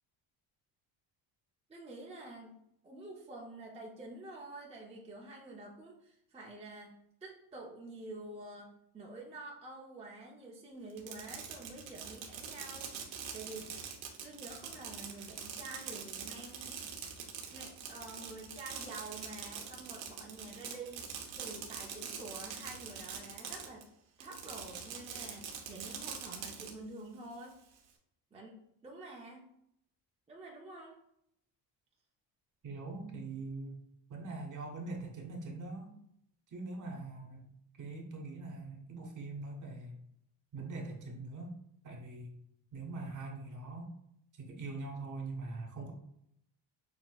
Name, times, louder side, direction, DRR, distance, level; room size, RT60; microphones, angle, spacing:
voice 1, 1.7-2.6 2.8-13.7 14.2-16.8 17.5-23.9 24.2-27.7 28.3-29.5 30.3-31.0, right 2 dB, 15° right, -2 dB, 0.6 m, -48 dB
Fireworks, 10.9-23.8 24.2-26.7, right 7 dB, 80° right, 1.0 m, -44 dB
voice 2, 32.6-33.8 34.1-35.9 36.5-37.5 37.8-40.0 40.5-41.5 41.8-42.3 42.7-43.9 44.4-45.9, right 3 dB, 40° right, 3 dB, 0.9 m, -42 dB
6.1 x 2.8 x 2.3 m, 0.75 s
cardioid pair, 125°, 46 cm